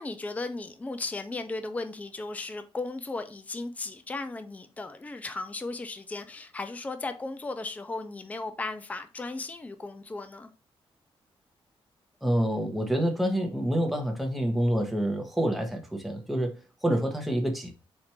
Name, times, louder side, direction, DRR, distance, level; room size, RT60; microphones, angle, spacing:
voice 1, 0.0-10.5, left 3 dB, 15° left, 0.4 m, -36 dB
voice 2, 12.2-16.6 16.8-17.7, equal, ahead, 0.9 m, -27 dB
4.4 x 2.5 x 4.3 m
wide cardioid pair, 135°, 10 cm